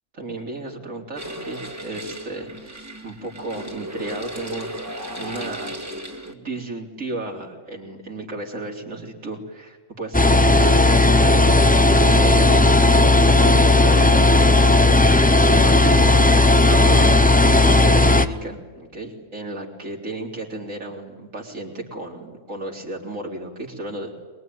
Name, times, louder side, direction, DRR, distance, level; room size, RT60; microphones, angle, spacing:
voice 1, 0.1-4.7 5.2-5.8 6.3-10.8 11.1-14.6 15.3-16.3 16.7-24.2, right 2 dB, 80° right, 0 dB, 4.1 m, -33 dB
sound 1, 1.2-6.3, equal, 10° right, 2.1 m, -35 dB
sound 2, 10.1-18.3, left 2 dB, 10° left, 0.6 m, -15 dB
23.0 x 22.5 x 9.4 m, 1.3 s
omnidirectional pair, 1.3 m